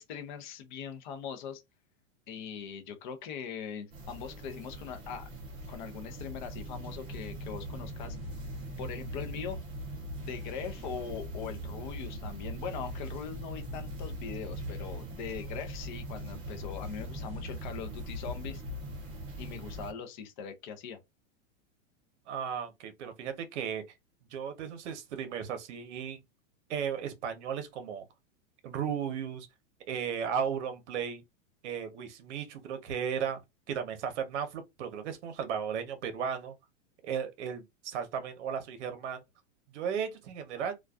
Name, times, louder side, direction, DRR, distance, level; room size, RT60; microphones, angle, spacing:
voice 1, 0.0-1.6 2.3-5.3 5.7-8.2 8.8-9.6 10.2-18.6 19.4-21.0, left 7 dB, 40° left, 0.5 m, -41 dB
sound 1, 3.9-19.9, equal, 15° right, 0.5 m, -40 dB
voice 2, 22.3-23.8 24.3-26.2 26.7-28.1 28.6-29.5 29.9-31.2 31.6-33.4 33.7-36.5 37.0-39.2 39.7-40.7, right 7 dB, 60° right, 0.8 m, -35 dB
2.4 x 2.3 x 2.3 m
supercardioid pair, 160°, 39 cm